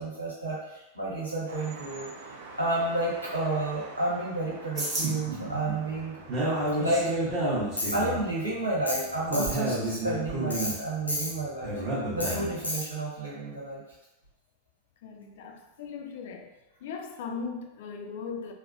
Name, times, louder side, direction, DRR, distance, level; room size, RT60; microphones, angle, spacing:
voice 1, 0.0-2.1 2.6-6.2 6.8-7.4 7.9-11.8 12.1-13.8, right 2 dB, 85° right, -8 dB, 1.1 m, -31 dB
sound 1, 1.5-6.7, right 3 dB, 55° right, 0.4 m, -46 dB
sound 2, 4.8-12.7, right 1 dB, 30° right, 1.1 m, -31 dB
Tools, 7.8-8.0 8.9-9.0 9.3-9.6 10.5-10.7 11.1-11.3 12.2-12.3 12.6-12.8, left 1 dB, 85° left, 0.7 m, -31 dB
voice 2, 12.3-12.6 15.0-16.5 16.8-18.5, left 5 dB, 55° left, 4 dB, 0.3 m, -38 dB
3.4 x 2.1 x 2.4 m, 0.97 s
figure-of-eight pair, 90°, 0 cm